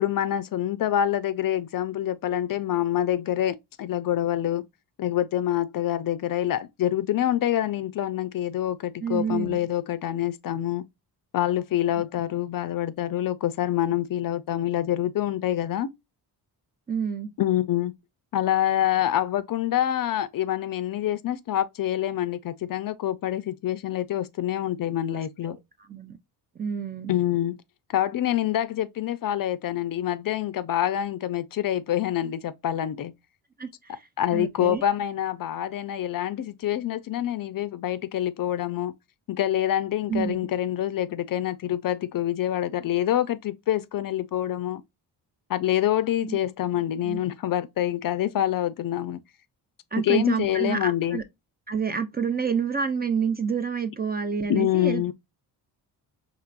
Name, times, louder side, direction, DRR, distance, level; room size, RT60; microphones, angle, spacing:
voice 1, 0.0-4.6 5.0-10.9 11.3-15.9 17.4-17.9 18.3-25.6 27.1-27.6 27.9-33.1 34.2-38.9 39.3-44.8 45.5-49.2 50.0-51.2 54.5-55.1, left 12 dB, 55° left, 0.5 m, -26 dB
voice 2, 9.0-9.6 12.0-12.1 16.9-17.3 25.4-26.2 26.6-27.1 33.6-34.8 40.1-40.4 46.2-46.4 47.0-47.2 49.9-51.2 51.7-55.1, right 6 dB, 20° right, 0.5 m, -29 dB
4.6 x 3.0 x 2.4 m
cardioid pair, 110°, 42 cm